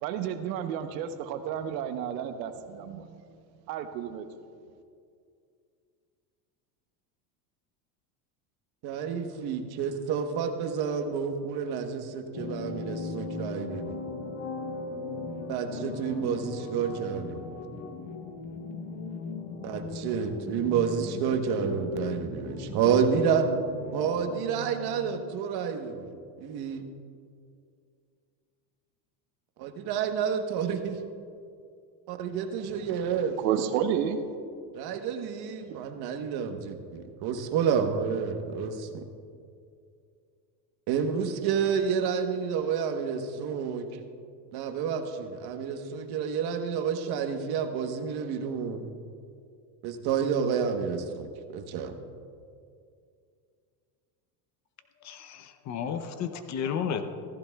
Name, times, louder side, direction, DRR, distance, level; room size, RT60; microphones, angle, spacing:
voice 1, 0.0-3.2 3.7-4.3 33.4-34.2 35.8-36.1, right 9 dB, 90° right, 9 dB, 1.0 m, -31 dB
voice 2, 8.8-14.0 15.5-17.4 19.6-23.5 23.9-26.1 26.4-26.8 29.6-31.0 32.1-33.4 34.7-39.0 40.9-43.9 44.5-48.8 49.8-51.9, right 7 dB, 50° right, 6 dB, 1.2 m, -29 dB
sound 1, 12.3-25.4, left 4 dB, 60° left, 1.3 m, -38 dB
voice 3, 55.0-57.0, left 7 dB, 35° left, 9 dB, 0.7 m, -32 dB
15.5 x 14.5 x 2.3 m, 2.3 s
supercardioid pair, 135°, 49 cm